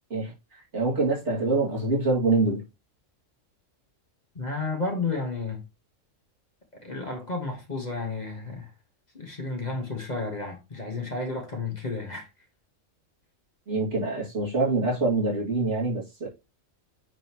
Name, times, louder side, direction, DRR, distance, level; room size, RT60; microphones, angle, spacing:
voice 1, 0.7-2.7 13.7-16.3, right 3 dB, 60° right, 2.7 m, -25 dB
voice 2, 4.3-5.6 6.8-8.7 9.1-12.3, left 3 dB, 35° left, 1.4 m, -32 dB
9.0 x 4.0 x 3.0 m
omnidirectional pair, 1.3 m